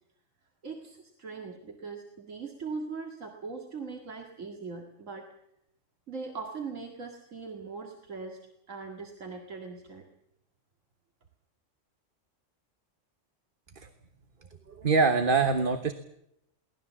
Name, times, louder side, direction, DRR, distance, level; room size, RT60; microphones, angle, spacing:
voice 1, 0.6-5.3 6.1-8.4 8.7-10.1, right 4 dB, 85° right, 2 dB, 2.4 m, -40 dB
voice 2, 14.8-15.9, right 4 dB, 45° right, 8 dB, 1.3 m, -23 dB
23.0 x 18.0 x 7.4 m, 0.79 s
omnidirectional pair, 1.3 m